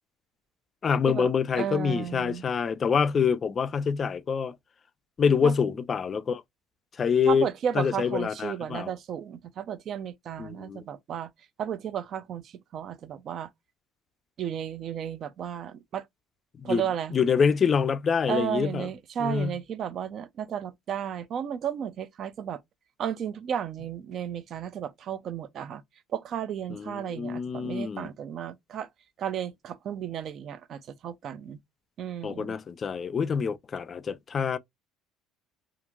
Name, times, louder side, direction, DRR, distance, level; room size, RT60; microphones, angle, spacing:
voice 1, 0.8-4.5 5.2-6.4 7.0-7.5 7.7-8.9 10.4-10.8 16.6-16.8 17.1-18.9 19.2-19.6 26.7-28.1 32.2-34.6, left 6 dB, 35° left, 0.3 m, -26 dB
voice 2, 1.6-2.4 5.4-5.5 7.3-11.3 11.6-12.4 12.7-13.5 14.4-16.0 16.6-17.1 18.3-22.6 23.0-25.8 26.1-28.9 29.2-31.6 32.0-32.6, right 9 dB, 50° right, 0.4 m, -33 dB
2.9 x 2.4 x 2.3 m
supercardioid pair, 105°, 0 cm